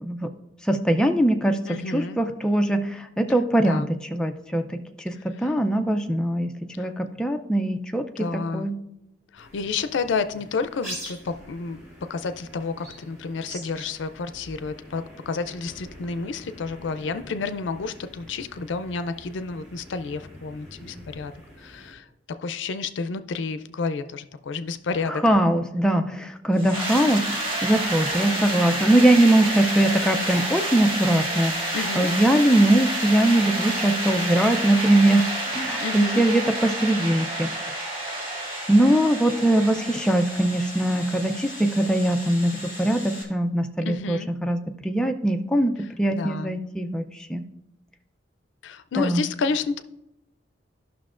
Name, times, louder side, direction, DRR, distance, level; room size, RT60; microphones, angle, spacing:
voice 1, 0.0-0.3 0.7-6.5 6.8-8.8 25.1-35.3 35.5-37.9 38.7-47.0 47.3-47.4 49.0-49.2, right 1 dB, 5° left, 5 dB, 0.4 m, -22 dB
voice 2, 1.7-2.2 3.6-3.9 5.1-5.5 6.8-6.9 8.2-8.7 9.3-11.8 12.1-21.3 21.6-22.1 22.4-25.3 31.7-32.1 35.8-36.2 38.3-38.4 43.8-44.3 46.1-46.5 48.6-49.8, left 4 dB, 80° left, 11 dB, 0.4 m, -30 dB
sound 1, 9.4-21.9, equal, 15° right, 2.9 m, -44 dB
sound 2, 26.6-43.2, right 1 dB, 30° right, 1.5 m, -29 dB
12.5 x 5.9 x 2.5 m, 0.89 s
head